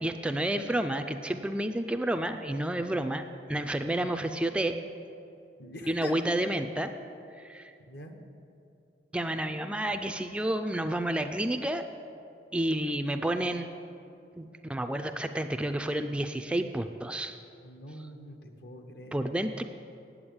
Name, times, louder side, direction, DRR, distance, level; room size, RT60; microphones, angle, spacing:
voice 1, 0.0-3.2 3.5-4.7 5.9-6.9 7.4-7.7 9.1-11.8 12.5-13.7 14.4-17.4 19.1-19.6, right 1 dB, 5° right, 6 dB, 0.3 m, -30 dB
voice 2, 5.6-6.2 7.9-8.1 17.6-19.2, left 1 dB, 65° left, 5 dB, 1.1 m, -44 dB
8.6 x 8.5 x 8.8 m, 2.7 s
head